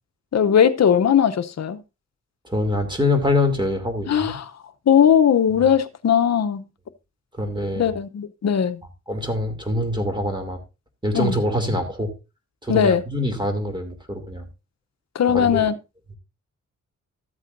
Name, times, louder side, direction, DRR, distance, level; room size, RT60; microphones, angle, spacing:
voice 1, 0.3-1.8 4.1-4.5 4.9-6.6 7.8-8.8 11.1-11.3 12.7-13.0 15.1-15.7, left 8 dB, 60° left, 0.8 m, -18 dB
voice 2, 2.4-4.4 7.3-7.9 9.1-10.6 11.0-12.1 12.6-14.5 15.3-15.6, left 1 dB, 15° right, 2.8 m, -24 dB
13.5 x 8.2 x 2.6 m
cardioid pair, 75°, 30 cm